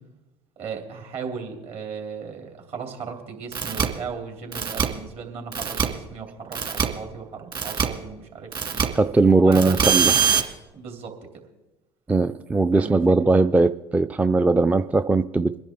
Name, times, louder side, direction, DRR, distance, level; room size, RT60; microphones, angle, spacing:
voice 1, 0.6-8.9 9.4-10.3 10.7-11.1 12.7-13.4, right 6 dB, 55° right, 3 dB, 2.9 m, -36 dB
sound 1, 3.5-3.8 4.5-4.8 5.5-5.8 6.5-6.8 7.5-7.8 8.5-8.8 9.5-10.4, right 7 dB, 35° right, 2.2 m, -22 dB
voice 2, 8.9-10.1 12.1-15.6, right 3 dB, 10° right, 11 dB, 0.4 m, -19 dB
23.5 x 10.5 x 3.6 m, 1.0 s
hypercardioid pair, 80°, 13 cm